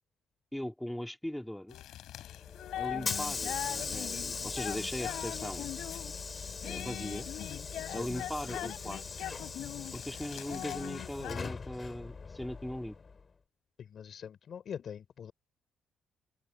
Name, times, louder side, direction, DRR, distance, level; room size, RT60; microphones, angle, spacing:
voice 1, 0.5-1.8 2.8-5.7 6.6-7.3 7.9-9.0 9.9-13.0, left 1 dB, 5° left, 2.5 m, -39 dB
sound 1, 1.7-11.5, left 13 dB, 85° left, 4.0 m, -41 dB
Hiss / Sliding door, 2.3-13.2, left 4 dB, 35° left, 4.1 m, -40 dB
voice 2, 13.8-15.3, left 8 dB, 60° left, 3.4 m, -43 dB
cardioid pair, 90°, 0 cm